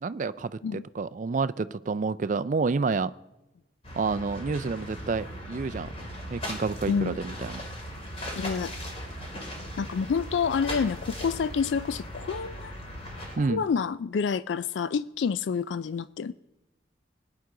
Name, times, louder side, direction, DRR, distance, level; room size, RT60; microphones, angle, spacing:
voice 1, 0.0-3.1 4.0-5.9 6.3-7.6 13.4-13.6, right 4 dB, 45° right, 13 dB, 0.4 m, -29 dB
sound 1, 3.8-13.4, equal, 30° left, 2.6 m, -38 dB
voice 2, 8.4-8.7 9.8-12.8 13.4-16.3, left 6 dB, 75° left, 16 dB, 0.4 m, -28 dB
20.5 x 9.6 x 3.8 m, 0.98 s
head